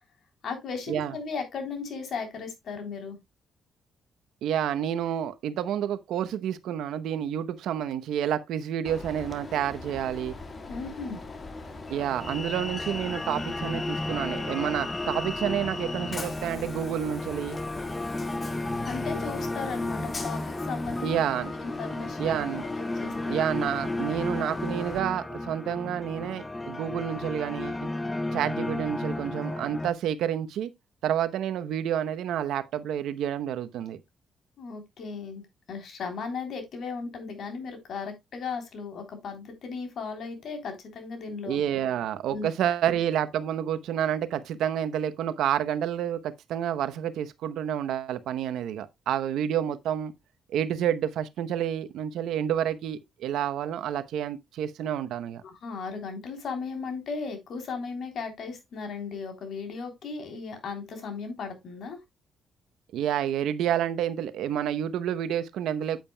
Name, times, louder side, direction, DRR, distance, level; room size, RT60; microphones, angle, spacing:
voice 1, 0.4-3.2 10.7-11.2 18.8-21.2 21.5-23.4 34.6-41.6 42.3-42.5 55.4-62.0, left 5 dB, 65° left, 3.4 m, -36 dB
voice 2, 4.4-10.3 11.9-17.6 21.0-21.5 22.2-22.6 23.3-27.9 28.3-30.7 31.0-34.0 41.4-50.1 50.5-55.4 62.9-66.0, right 10 dB, 80° right, 0.8 m, -29 dB
Train, 8.8-25.0, left 3 dB, 35° left, 1.7 m, -39 dB
sound 1, 11.9-29.9, left 2 dB, 15° left, 0.5 m, -34 dB
8.9 x 8.6 x 2.2 m
cardioid pair, 90°, 0 cm